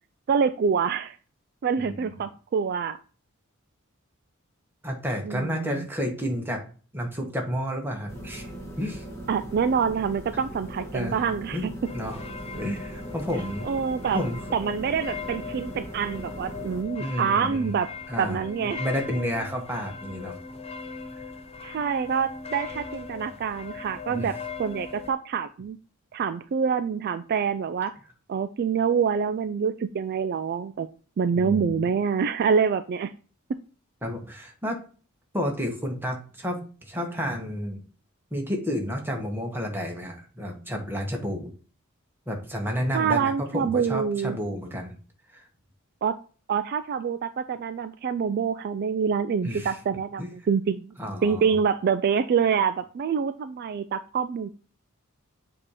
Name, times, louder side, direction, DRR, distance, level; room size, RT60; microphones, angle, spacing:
voice 1, 0.3-1.2 1.6-3.0 5.3-5.8 9.3-11.7 13.7-14.2 14.5-17.9 18.2-18.8 21.6-25.8 26.1-27.9 28.3-30.9 31.2-33.1 42.9-44.4 46.0-46.2 46.5-50.9 51.2-54.5, right 6 dB, 50° right, 11 dB, 0.3 m, -26 dB
voice 2, 1.8-2.3 4.8-6.6 6.9-8.5 8.8-9.0 10.9-11.2 11.5-11.7 11.9-12.2 12.5-13.7 14.1-14.4 17.0-17.8 18.1-18.4 18.8-20.4 24.1-24.3 31.3-31.9 34.0-34.8 35.3-37.8 38.3-41.5 42.3-45.0 45.3-45.5 49.4-49.8 50.2-50.3 51.0-51.6, equal, 10° right, 2 dB, 1.2 m, -31 dB
sound 1, 8.1-16.8, right 1 dB, 15° left, 1.7 m, -39 dB
sound 2, 11.8-25.1, left 5 dB, 30° left, 0.5 m, -39 dB
7.4 x 2.9 x 4.8 m, 0.39 s
head